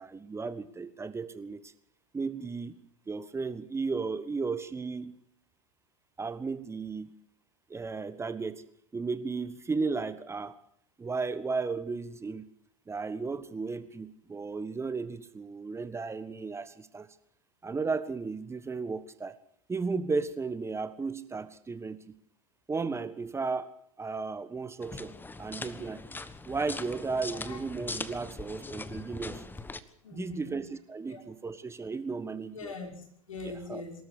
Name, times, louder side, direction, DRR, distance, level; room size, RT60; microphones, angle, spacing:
voice 1, 0.0-1.7 2.1-2.8 3.1-5.2 6.2-7.1 7.7-8.6 8.9-10.6 11.0-12.5 12.9-17.1 17.6-19.4 19.7-22.1 22.7-26.0 26.4-29.4 30.2-32.7 33.4-33.8, right 4 dB, 15° right, 13 dB, 1.4 m, -34 dB
sound 1, 24.8-29.8, left 3 dB, 10° left, 1.3 m, -41 dB
voice 2, 30.0-30.6 31.1-31.2 32.5-34.0, left 4 dB, 80° left, 3 dB, 5.6 m, -42 dB
23.5 x 13.5 x 8.5 m, 0.65 s
hypercardioid pair, 90°, 17 cm